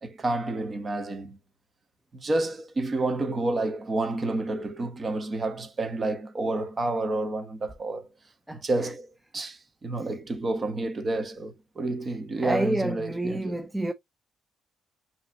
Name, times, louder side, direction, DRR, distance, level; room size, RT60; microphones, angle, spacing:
voice 1, 0.0-1.4 2.1-8.1 8.6-9.1 9.3-13.6, right 2 dB, 35° right, 1.3 m, -29 dB
voice 2, 8.5-8.9 10.0-10.1 12.1-13.9, right 1 dB, 5° right, 0.5 m, -29 dB
5.8 x 3.2 x 2.6 m
cardioid pair, 90°, 0 cm